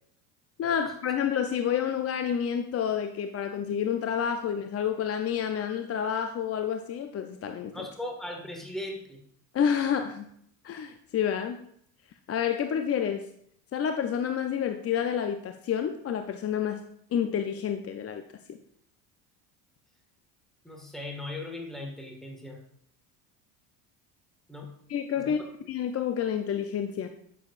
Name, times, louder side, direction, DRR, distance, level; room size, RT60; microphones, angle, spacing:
voice 1, 0.6-7.9 9.5-10.3 10.6-11.6 12.3-13.3 13.7-16.8 17.1-18.2 24.9-25.4 25.7-27.1, left 8 dB, 30° left, 7 dB, 0.6 m, -29 dB
voice 2, 7.7-9.2 20.6-22.6 24.5-24.7 25.2-25.4 25.6-25.7, left 1 dB, ahead, 1 dB, 1.7 m, -38 dB
10.0 x 7.0 x 2.5 m, 0.68 s
hypercardioid pair, 80°, 47 cm